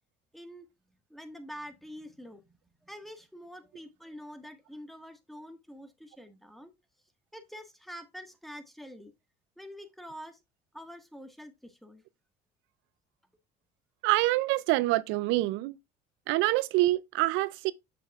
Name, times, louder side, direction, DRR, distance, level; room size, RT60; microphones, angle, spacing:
voice 1, 0.3-0.7 1.1-2.4 2.8-6.7 7.3-9.1 9.6-10.4 10.7-12.0, equal, ahead, 1.5 m, -46 dB
voice 2, 14.0-15.8 16.3-17.7, right 18 dB, 70° right, 0.4 m, -26 dB
7.6 x 6.6 x 2.4 m
supercardioid pair, 90°, 20 cm